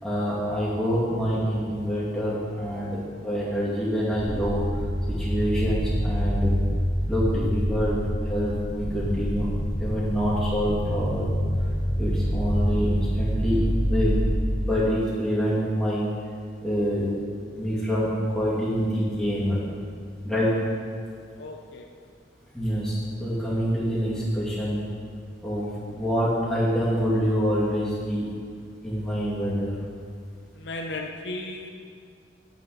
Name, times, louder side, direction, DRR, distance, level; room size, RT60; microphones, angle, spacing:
voice 1, 0.0-4.6 5.1-6.6 7.1-8.0 8.2-9.5 9.8-11.4 12.0-14.2 14.6-16.1 16.6-17.1 17.5-19.6 20.2-20.6 22.5-24.8 25.4-28.3 28.8-29.7, equal, 5° left, -9 dB, 2.3 m, -26 dB
sound 1, 4.1-14.3, equal, 25° right, 1.3 m, -26 dB
voice 2, 21.3-21.9 30.5-31.7, left 2 dB, 70° left, 3 dB, 0.6 m, -35 dB
9.2 x 8.4 x 4.2 m, 2.2 s
head